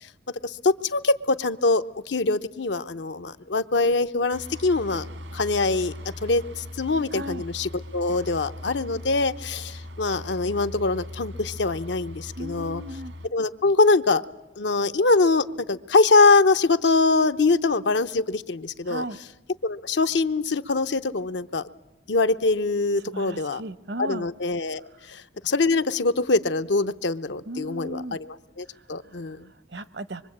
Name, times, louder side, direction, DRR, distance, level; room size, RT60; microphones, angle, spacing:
voice 1, 0.4-5.1 5.3-5.9 6.2-12.8 13.3-14.2 14.6-19.0 19.6-21.7 22.1-23.6 24.0-29.5, left 3 dB, 75° left, 11 dB, 0.8 m, -23 dB
sound 1, 4.3-13.3, left 1 dB, 85° right, 1.8 m, -39 dB
voice 2, 7.1-7.4 12.4-13.1 18.9-19.2 23.1-24.3 27.5-28.2 28.7-28.8 29.1-29.2 29.7-30.2, right 1 dB, 65° right, 15 dB, 0.9 m, -35 dB
25.5 x 23.5 x 8.7 m, 0.98 s
head